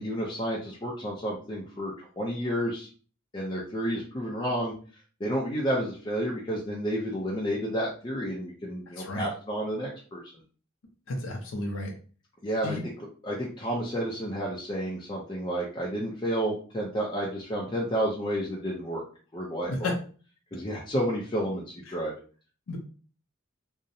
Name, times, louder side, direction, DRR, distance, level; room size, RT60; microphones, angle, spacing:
voice 1, 0.0-2.9 3.3-4.7 5.2-10.2 12.4-12.8 13.2-19.0 19.3-19.9 20.5-22.1, equal, 25° left, -4 dB, 0.4 m, -31 dB
voice 2, 11.1-11.9 12.6-12.8 19.8-19.9 22.7-22.8, left 2 dB, 75° left, 1 dB, 0.5 m, -32 dB
2.6 x 2.0 x 2.6 m, 0.40 s
head